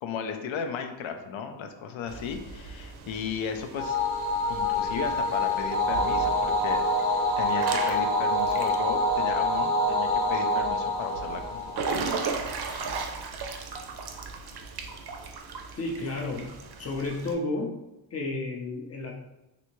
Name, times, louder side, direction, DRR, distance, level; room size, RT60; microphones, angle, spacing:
voice 1, 0.0-4.0 4.5-6.8 7.1-12.1, left 6 dB, 75° left, 6 dB, 0.6 m, -35 dB
Water / Splash splatter / Drip, 2.1-17.3, right 4 dB, 55° right, 0.5 m, -38 dB
sound 1, 3.7-12.3, left 1 dB, 5° right, 0.8 m, -26 dB
voice 2, 15.8-16.5 16.8-17.7 18.1-19.1, left 2 dB, 30° left, 1 dB, 0.5 m, -31 dB
3.3 x 2.7 x 3.0 m, 0.93 s
wide cardioid pair, 165°, 47 cm